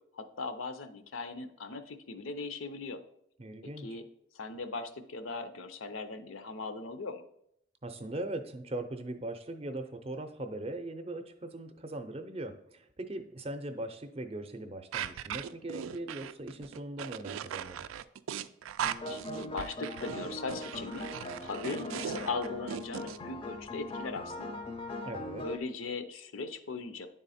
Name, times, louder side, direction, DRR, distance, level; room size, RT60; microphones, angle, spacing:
voice 1, 0.1-3.0 3.6-4.0 4.3-7.2 19.1-24.5 25.4-27.1, left 3 dB, 80° left, 10 dB, 0.6 m, -39 dB
voice 2, 3.4-4.0 7.8-17.9 25.0-25.4, right 1 dB, 30° right, 7 dB, 0.5 m, -40 dB
sound 1, 14.9-23.2, right 9 dB, 85° right, 0.3 m, -39 dB
sound 2, 18.8-25.6, left 2 dB, 25° left, 0.5 m, -41 dB
9.6 x 3.7 x 4.2 m, 0.74 s
head